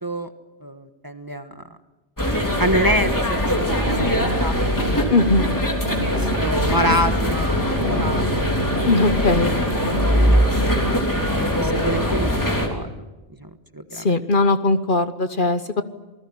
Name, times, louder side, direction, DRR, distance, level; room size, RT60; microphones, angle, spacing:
voice 1, 0.0-0.3 0.6-1.6 2.6-5.6 6.0-8.9 9.4-10.8 11.6-12.9 13.4-14.1, equal, 20° right, 8 dB, 1.4 m, -27 dB
sound 1, 2.2-12.7, equal, 15° left, 3.5 m, -21 dB
sound 2, 3.5-11.2, equal, 60° right, 4.3 m, -30 dB
voice 2, 5.1-5.5 8.9-9.5 13.9-15.8, left 2 dB, 50° left, 11 dB, 1.2 m, -19 dB
28.0 x 19.0 x 9.9 m, 1.1 s
omnidirectional pair, 1.1 m